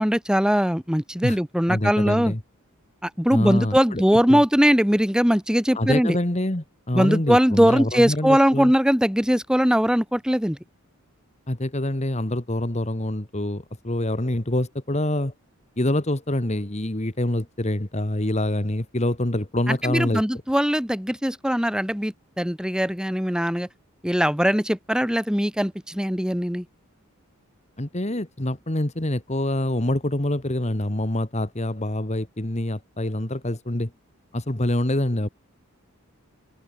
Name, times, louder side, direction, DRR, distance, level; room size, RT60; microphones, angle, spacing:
voice 1, 0.0-2.3 3.0-6.2 6.9-10.6 19.7-23.7 24.0-26.6, equal, 5° right, 1.6 m, -21 dB
voice 2, 1.7-2.4 3.3-4.0 4.3-4.4 5.7-8.7 11.5-15.3 15.8-20.2 27.8-33.9 34.3-35.3, left 1 dB, 30° left, 1.7 m, -25 dB
head